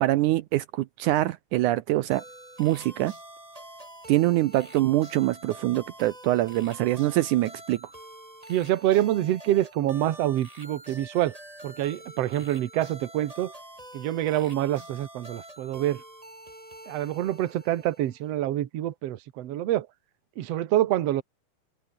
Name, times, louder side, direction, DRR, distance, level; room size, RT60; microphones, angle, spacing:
voice 1, 0.0-2.2 2.6-3.1 4.1-7.8, right 16 dB, 75° right, 2.1 m, -24 dB
sound 1, 2.1-18.3, right 1 dB, 10° right, 5.7 m, -46 dB
voice 2, 8.5-11.4 11.6-13.5 13.9-16.0 16.9-19.9 20.4-21.2, right 13 dB, 60° right, 2.0 m, -26 dB
omnidirectional pair, 3.7 m